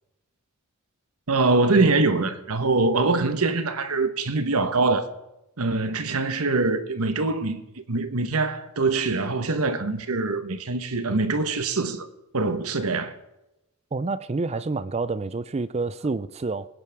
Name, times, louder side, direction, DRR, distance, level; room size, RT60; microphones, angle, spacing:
voice 1, 1.3-5.1 5.6-7.6 7.9-12.1 12.3-13.1, right 3 dB, 80° right, 1.2 m, -23 dB
voice 2, 13.9-16.7, right 3 dB, 30° right, 0.4 m, -28 dB
23.5 x 9.8 x 3.5 m
head